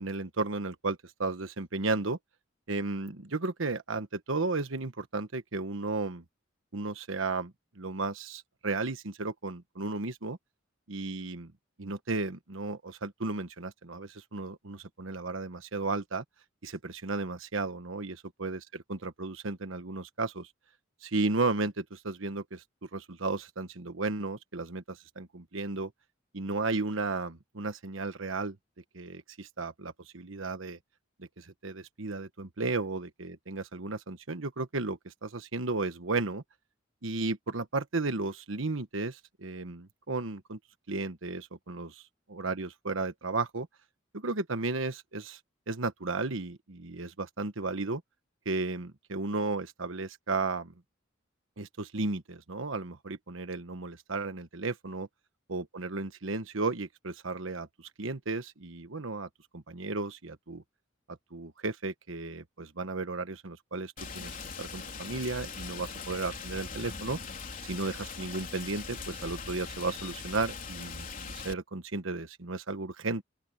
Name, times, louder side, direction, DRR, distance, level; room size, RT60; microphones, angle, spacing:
voice 1, 0.0-2.2 2.7-6.2 6.7-10.4 10.9-11.5 11.8-16.2 16.6-20.5 21.0-25.9 26.3-28.6 28.9-30.8 31.2-36.4 37.0-40.6 40.9-42.0 42.3-43.7 44.1-45.4 45.7-48.0 48.4-50.7 51.6-55.1 55.5-60.6 61.3-67.2 67.6-73.2, right 3 dB, 80° right, 1.3 m, -34 dB
Rain, 64.0-71.5, left 5 dB, 45° left, 3.6 m, -41 dB
open air
head